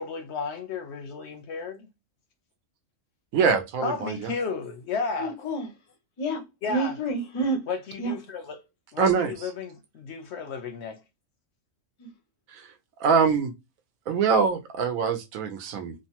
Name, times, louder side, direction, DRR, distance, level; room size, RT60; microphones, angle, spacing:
voice 1, 0.0-1.9 3.8-5.3 6.6-6.9 7.7-8.6 8.9-11.0, left 4 dB, 65° left, 0.7 m, -33 dB
voice 2, 3.3-4.3 9.0-9.3 12.5-12.6 13.0-13.5 14.1-15.9, right 6 dB, 80° right, 1.1 m, -24 dB
voice 3, 5.2-5.7 6.2-6.4 6.7-7.6 8.0-8.1 12.0-12.1, right 2 dB, 40° left, 0.4 m, -28 dB
3.0 x 2.2 x 2.8 m
omnidirectional pair, 1.4 m